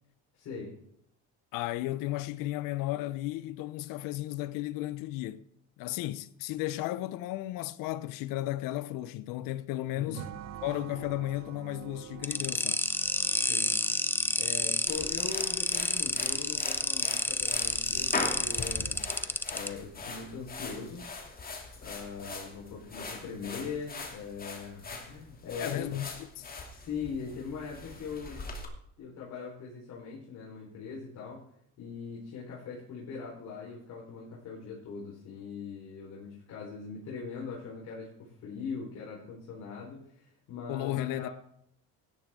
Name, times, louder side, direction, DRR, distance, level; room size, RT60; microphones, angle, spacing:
voice 1, 0.3-0.7 9.9-10.2 13.4-13.7 14.4-19.0 19.5-21.0 21.8-25.9 26.7-28.4 29.0-31.4 31.8-41.3, left 5 dB, 55° left, 4.5 m, -41 dB
voice 2, 1.5-5.4 5.8-10.3 10.6-12.9 25.6-26.1 26.4-26.5 40.7-41.3, left 15 dB, 75° left, 0.9 m, -34 dB
sound 1, 10.1-15.3, right 10 dB, 50° right, 0.9 m, -46 dB
sound 2, 12.2-19.7, left 2 dB, 5° left, 0.7 m, -29 dB
sound 3, 14.9-28.7, left 3 dB, 25° left, 2.7 m, -41 dB
16.0 x 11.0 x 3.7 m
cardioid pair, 115°, 34 cm